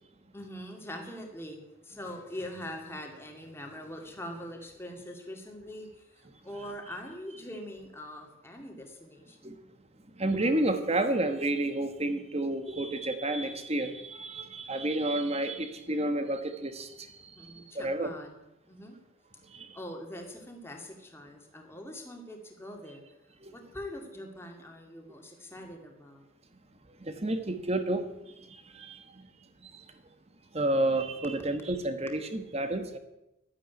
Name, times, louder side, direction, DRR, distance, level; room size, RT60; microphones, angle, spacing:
voice 1, 0.3-9.5 17.3-19.0 19.7-23.0 23.5-26.3, left 1 dB, 10° left, 2 dB, 2.3 m, -43 dB
voice 2, 10.2-18.1 19.5-19.7 23.4-23.5 27.0-28.1 28.5-29.0 29.6-29.7 30.5-33.0, right 1 dB, 30° right, 9 dB, 1.3 m, -30 dB
12.0 x 10.0 x 9.4 m, 0.92 s
head